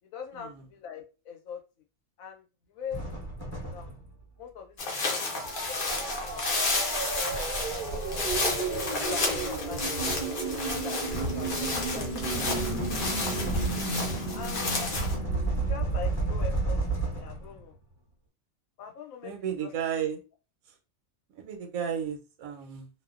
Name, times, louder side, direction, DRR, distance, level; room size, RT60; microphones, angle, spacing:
voice 1, 0.1-1.6 2.2-3.1 3.5-3.9 4.4-5.2 5.7-6.7 8.7-11.1 11.3-12.5 14.3-15.1 15.5-17.7 18.8-19.3 19.6-19.7, left 7 dB, 85° left, 3 dB, 1.0 m, -42 dB
sound 1, 2.9-4.2 5.4-17.7, right 2 dB, 25° left, 1.1 m, -33 dB
sound 2, 4.8-15.2, left 3 dB, 50° left, 0.7 m, -32 dB
sound 3, 5.2-16.9, right 4 dB, 55° right, 0.6 m, -35 dB
voice 2, 19.2-20.2 21.3-22.9, right 8 dB, 90° right, 4 dB, 1.0 m, -34 dB
2.5 x 2.1 x 2.3 m, 0.32 s
omnidirectional pair, 1.4 m